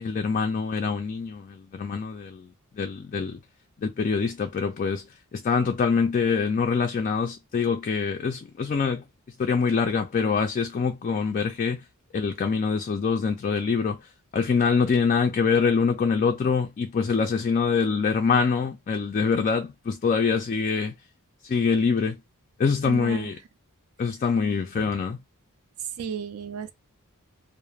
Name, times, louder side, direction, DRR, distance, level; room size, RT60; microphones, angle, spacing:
voice 1, 0.0-3.4 3.8-5.1 5.3-9.0 9.4-11.8 12.1-14.0 14.3-20.9 21.4-22.2 22.6-23.4 24.0-25.2, left 5 dB, 35° left, 0.3 m, -25 dB
voice 2, 22.8-23.3 24.7-24.9 25.8-26.7, right 7 dB, 80° right, 0.4 m, -33 dB
2.3 x 2.0 x 3.1 m
head